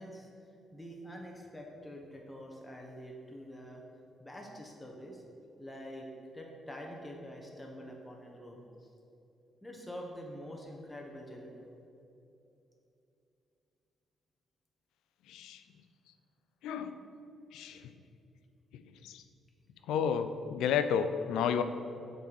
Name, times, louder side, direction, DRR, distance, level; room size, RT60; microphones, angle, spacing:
voice 1, 0.0-3.8 4.2-5.2 5.6-6.1 6.3-8.9 9.6-11.7, equal, 15° left, 0 dB, 1.1 m, -46 dB
voice 2, 15.3-15.6 16.6-17.0 17.5-17.8 19.1-19.2 19.9-21.6, left 7 dB, 80° left, 10 dB, 0.3 m, -31 dB
6.9 x 4.0 x 4.7 m, 2.8 s
supercardioid pair, 55°, 0 cm